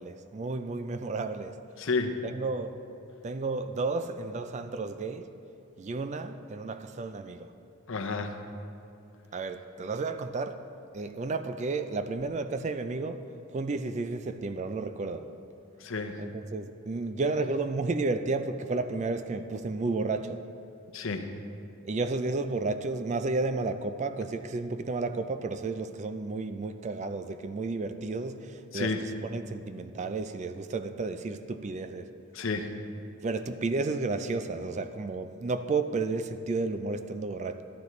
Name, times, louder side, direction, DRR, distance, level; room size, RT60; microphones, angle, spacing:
voice 1, 0.0-1.6 2.2-2.8 3.2-5.3 5.8-7.5 9.3-10.6 10.9-13.2 13.5-15.3 16.2-20.4 21.8-28.9 29.2-32.1 33.2-37.6, right 3 dB, 35° right, 0.3 m, -32 dB
voice 2, 1.8-2.2 7.9-8.3 15.8-16.2 20.9-21.2 28.7-29.0 32.3-32.7, left 4 dB, 60° left, 0.7 m, -31 dB
12.0 x 11.5 x 3.2 m
head